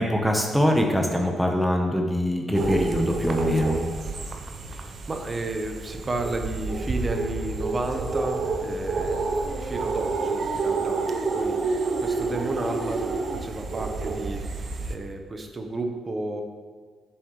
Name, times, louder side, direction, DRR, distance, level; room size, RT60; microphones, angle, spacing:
voice 1, 0.0-3.8, equal, ahead, 1 dB, 1.1 m, -23 dB
sound 1, 2.5-15.0, right 3 dB, 50° right, 0.8 m, -29 dB
voice 2, 4.7-13.1 13.4-16.4, right 2 dB, 30° right, 4 dB, 1.1 m, -32 dB
10.5 x 7.4 x 3.3 m, 1.5 s
cardioid pair, 90°, 0 cm